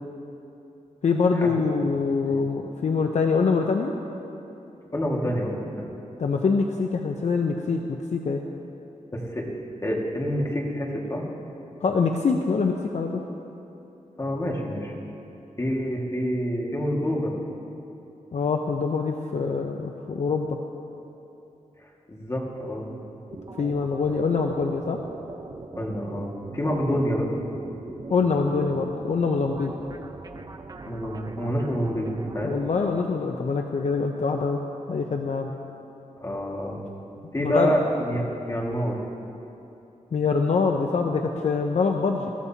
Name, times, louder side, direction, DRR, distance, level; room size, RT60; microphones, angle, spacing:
voice 1, 1.0-3.9 6.2-7.8 8.1-8.4 11.8-13.2 18.3-20.5 23.6-25.0 28.1-29.7 32.4-34.6 34.9-35.5 37.4-37.7 40.1-42.3, left 4 dB, 60° left, 3 dB, 0.7 m, -24 dB
voice 2, 4.9-5.9 9.1-9.5 9.8-11.3 14.2-14.9 15.6-17.3 22.1-22.9 25.8-27.3 30.9-32.6 36.2-36.8 37.3-39.0, equal, 25° left, -2 dB, 1.9 m, -27 dB
sound 1, 23.3-33.0, right 3 dB, 30° right, 0.6 m, -40 dB
20.5 x 14.5 x 2.8 m, 2.9 s
wide cardioid pair, 140°, 13 cm